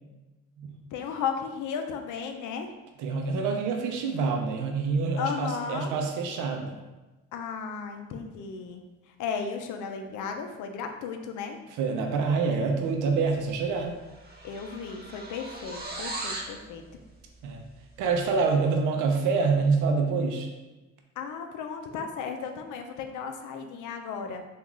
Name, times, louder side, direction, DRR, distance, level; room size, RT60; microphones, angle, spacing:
voice 1, 0.9-2.7 5.2-5.9 7.3-11.6 14.4-16.8 21.2-24.4, left 6 dB, 80° left, 5 dB, 0.5 m, -35 dB
voice 2, 3.0-6.8 11.8-13.9 17.4-17.6 18.0-20.5, right 4 dB, 90° right, 2 dB, 0.5 m, -26 dB
sound 1, 13.4-13.6 13.9-16.6, right 2 dB, 30° right, 0.6 m, -38 dB
3.0 x 2.4 x 3.6 m, 1.1 s
cardioid pair, 90°, 30 cm